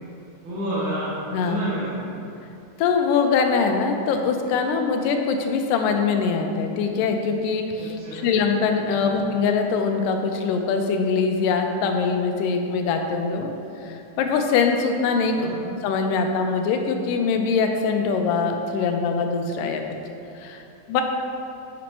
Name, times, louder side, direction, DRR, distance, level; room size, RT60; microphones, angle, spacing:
voice 1, 0.4-2.2 7.8-8.2 8.9-9.1 15.3-15.7, equal, 65° right, -11 dB, 2.3 m, -30 dB
voice 2, 2.8-13.5 13.8-19.8 20.4-20.6 20.9-21.0, left 5 dB, 80° left, 4 dB, 2.1 m, -23 dB
8.5 x 5.1 x 3.0 m, 2.7 s
omnidirectional pair, 4.0 m